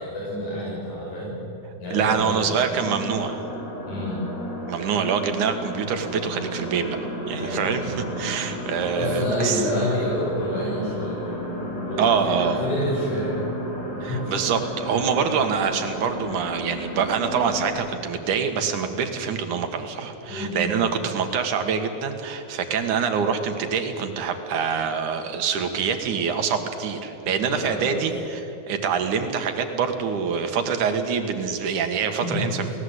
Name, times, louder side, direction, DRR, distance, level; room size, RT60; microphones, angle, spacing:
voice 1, 0.0-1.4 1.8-2.8 3.8-4.3 7.4-8.0 8.9-11.4 11.8-13.4 14.0-14.4 20.3-20.8 27.4-28.0 32.2-32.5, equal, 80° left, -6 dB, 7.7 m, -28 dB
voice 2, 1.9-3.4 4.7-7.0 7.3-9.6 12.0-12.6 14.0-28.4 28.7-32.7, right 6 dB, 85° right, 6 dB, 3.2 m, -25 dB
sound 1, 2.7-17.7, equal, 65° left, 6.2 m, -33 dB
29.5 x 18.5 x 8.2 m, 3.0 s
omnidirectional pair, 3.4 m